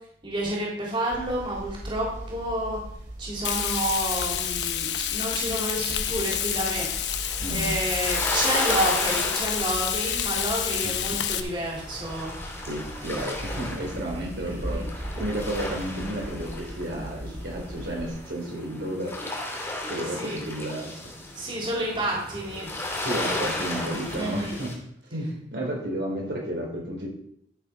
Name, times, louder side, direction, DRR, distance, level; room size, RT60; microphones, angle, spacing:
voice 1, 0.2-2.8 3.2-6.9 7.5-12.3 14.1-14.9 20.2-20.4 21.3-22.7 24.1-24.6, right 1 dB, 30° right, -4 dB, 3.4 m, -30 dB
sound 1, 1.1-18.1, right 1 dB, 50° right, 4.0 m, -39 dB
Frying (food), 3.4-11.4, left 10 dB, 80° left, 1.0 m, -28 dB
sound 2, 6.3-24.7, left 1 dB, 15° left, 2.8 m, -35 dB
voice 2, 12.7-21.1 23.0-24.8 25.1-27.1, right 1 dB, 80° right, -1 dB, 3.7 m, -32 dB
12.0 x 6.7 x 5.0 m, 0.72 s
head